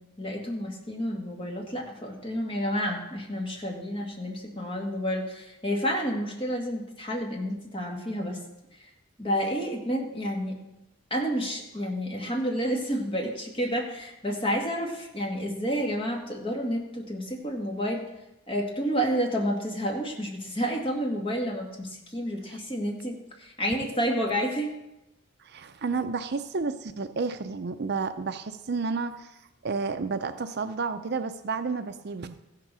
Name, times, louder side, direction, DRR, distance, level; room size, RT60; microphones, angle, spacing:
voice 1, 0.2-8.4 9.2-10.6 11.1-18.0 18.5-24.7, equal, 25° left, 0 dB, 1.9 m, -30 dB
voice 2, 25.4-32.4, right 4 dB, 50° right, 10 dB, 0.5 m, -31 dB
15.0 x 6.7 x 6.1 m, 0.93 s
head